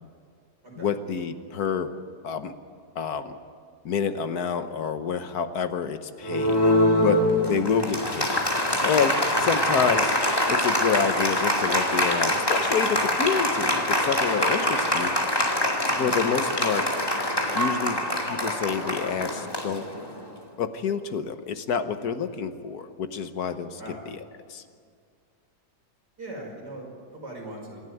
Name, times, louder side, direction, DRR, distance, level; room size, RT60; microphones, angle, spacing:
voice 1, 0.8-1.9 2.2-2.5 2.9-3.4 3.8-8.4 8.8-10.1 10.5-15.2 16.0-16.9 17.5-19.9 20.6-23.8 24.1-24.2 24.5-24.6, left 6 dB, 65° left, 9 dB, 1.5 m, -28 dB
Applause, 6.2-20.3, left 1 dB, 15° left, 1.9 m, -24 dB
voice 2, 26.2-27.8, right 1 dB, 85° right, -2 dB, 6.0 m, -40 dB
26.5 x 11.5 x 9.2 m, 2.1 s
omnidirectional pair, 1.8 m